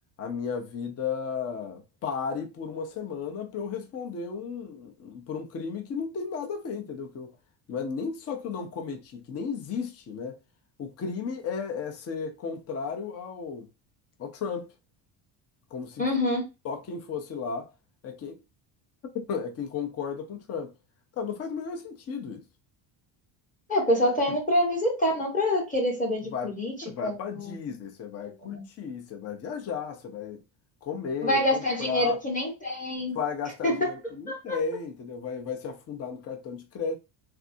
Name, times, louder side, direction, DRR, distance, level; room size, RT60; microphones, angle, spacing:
voice 1, 0.2-7.3 7.7-10.4 10.8-13.7 14.2-14.7 15.7-16.0 16.6-17.7 18.0-18.4 19.1-20.7 21.2-22.4 24.3-24.4 26.3-26.5 26.8-30.4 30.8-32.2 33.1-37.0, left 6 dB, 35° left, 0.6 m, -34 dB
voice 2, 16.0-16.4 23.7-26.7 27.0-27.5 28.4-28.6 31.2-33.2 33.6-33.9 34.3-34.6, left 1 dB, 15° left, 1.0 m, -26 dB
3.4 x 2.6 x 2.6 m
cardioid pair, 165°, 46 cm